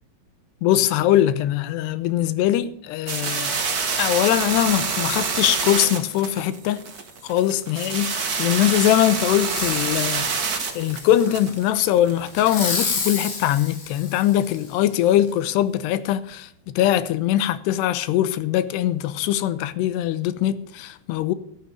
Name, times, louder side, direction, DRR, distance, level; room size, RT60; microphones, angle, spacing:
voice 1, 0.6-3.6 4.0-6.9 7.2-10.3 10.8-21.3, left 12 dB, 85° left, 3.0 m, -22 dB
sound 1, 3.1-12.5, right 5 dB, 70° right, 0.8 m, -27 dB
Fireworks, 9.3-10.0 10.5-11.5 12.3-14.7 15.3-15.4, left 4 dB, 70° left, 5.7 m, -30 dB
14.0 x 13.5 x 5.1 m
omnidirectional pair, 4.7 m